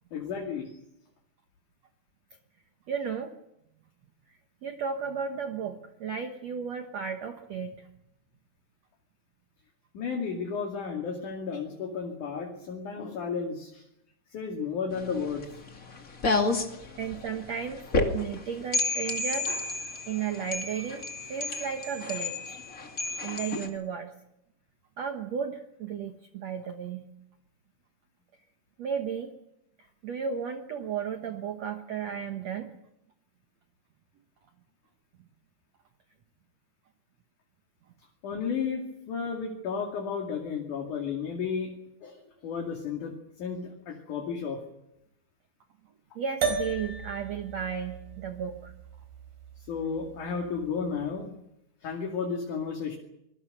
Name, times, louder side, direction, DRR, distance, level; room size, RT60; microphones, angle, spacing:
voice 1, 0.1-0.7 9.9-13.9 14.3-15.5 38.2-41.7 42.0-44.6 49.7-51.3 51.8-53.0, left 6 dB, 55° left, 1 dB, 3.7 m, -33 dB
voice 2, 2.9-3.3 4.6-7.9 17.0-17.8 18.1-19.5 20.1-22.6 23.2-24.1 25.0-27.1 28.8-29.3 29.8-32.7 46.2-48.7, right 7 dB, 60° right, 6 dB, 2.0 m, -34 dB
sound 1, 14.9-23.7, left 3 dB, 30° left, 1.9 m, -31 dB
sound 2, 46.4-51.0, right 5 dB, 90° right, 6.0 m, -36 dB
26.0 x 21.5 x 6.7 m, 0.82 s
omnidirectional pair, 4.4 m